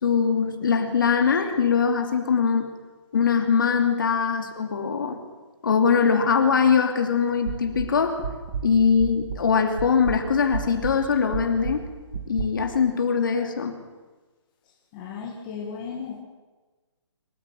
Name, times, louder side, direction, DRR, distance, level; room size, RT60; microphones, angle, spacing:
voice 1, 0.0-2.7 3.1-5.2 5.6-8.2 8.6-11.8 12.3-13.8, left 6 dB, 45° left, 5 dB, 2.8 m, -22 dB
sound 1, 7.5-9.5 9.8-12.4, right 6 dB, 35° right, 2.7 m, -32 dB
voice 2, 14.9-16.2, left 6 dB, 15° left, -2 dB, 1.9 m, -35 dB
25.0 x 14.0 x 9.1 m, 1.3 s
hypercardioid pair, 180°, 15 cm